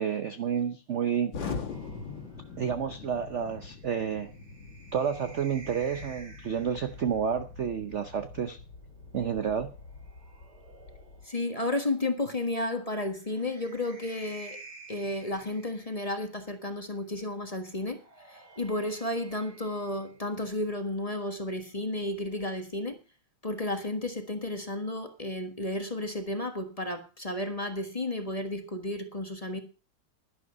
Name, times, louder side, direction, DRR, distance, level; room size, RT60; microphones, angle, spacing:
voice 1, 0.0-1.3 2.6-4.3 4.9-8.6 9.1-9.7, right 7 dB, 70° right, 0.6 m, -30 dB
Explosion, 1.3-11.2, left 4 dB, 60° left, 2.7 m, -43 dB
sound 1, 1.7-7.2 8.6-11.6 12.9-16.4 17.7-20.6, right 3 dB, 50° right, 3.9 m, -53 dB
voice 2, 11.2-14.6 14.9-18.0 18.3-23.0 23.4-29.6, left 2 dB, 20° left, 1.3 m, -32 dB
11.5 x 11.5 x 5.3 m
omnidirectional pair, 2.3 m